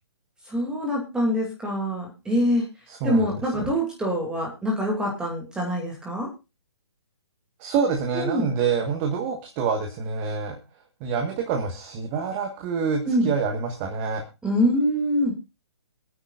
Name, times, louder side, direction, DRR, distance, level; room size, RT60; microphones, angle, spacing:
voice 1, 0.5-2.6 3.0-6.3 8.1-8.5 13.1-13.3 14.4-15.3, equal, 5° right, -1 dB, 2.5 m, -24 dB
voice 2, 2.9-3.7 7.6-10.6 11.0-14.2, right 5 dB, 25° right, 3 dB, 1.6 m, -27 dB
23.5 x 9.6 x 2.5 m, 0.27 s
figure-of-eight pair, 140°, 14 cm